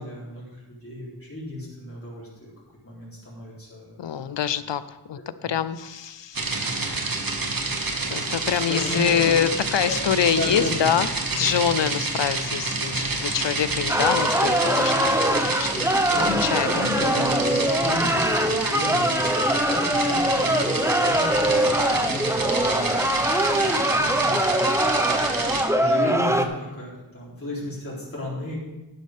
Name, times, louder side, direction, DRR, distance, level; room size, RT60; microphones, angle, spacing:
voice 1, 0.0-2.5 2.8-4.6 5.1-5.6 8.7-9.2 9.9-10.0 10.3-10.9 16.1-28.6, left 1 dB, 30° left, -7 dB, 3.7 m, -34 dB
voice 2, 4.0-6.4 6.8-7.2 8.1-11.1 11.4-15.9 16.4-16.7 17.2-17.4, left 8 dB, 85° left, 15 dB, 0.6 m, -25 dB
sound 1, 6.3-25.6, right 3 dB, 50° right, 1.3 m, -28 dB
sound 2, 13.9-26.5, right 1 dB, 5° right, 0.7 m, -22 dB
10.5 x 10.5 x 3.6 m, 1.0 s
wide cardioid pair, 80°, 43 cm